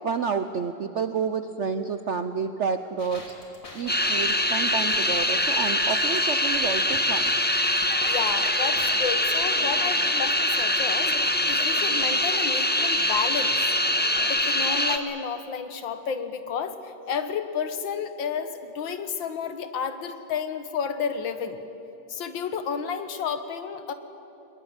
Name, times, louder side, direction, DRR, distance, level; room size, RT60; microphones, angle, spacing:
voice 1, 0.0-3.3 3.7-7.3, right 6 dB, 65° right, 9 dB, 0.7 m, -29 dB
sound 1, 3.0-8.9, left 2 dB, 45° left, 3.2 m, -42 dB
sound 2, 3.9-15.0, left 1 dB, 10° left, 0.5 m, -24 dB
voice 2, 8.0-13.6 14.3-21.6 22.1-23.9, left 6 dB, 85° left, 10 dB, 2.0 m, -31 dB
22.0 x 21.5 x 8.9 m, 2.8 s
omnidirectional pair, 2.0 m